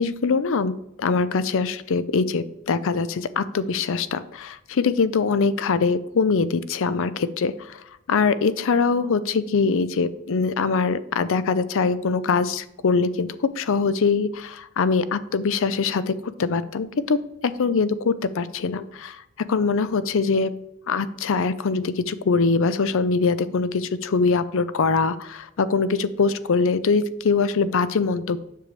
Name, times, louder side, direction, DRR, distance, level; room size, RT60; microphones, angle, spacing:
voice 1, 0.0-7.8 8.1-19.2 19.5-20.5 20.9-28.4, left 4 dB, 60° left, 14 dB, 0.5 m, -23 dB
7.5 x 6.9 x 3.2 m, 0.82 s
head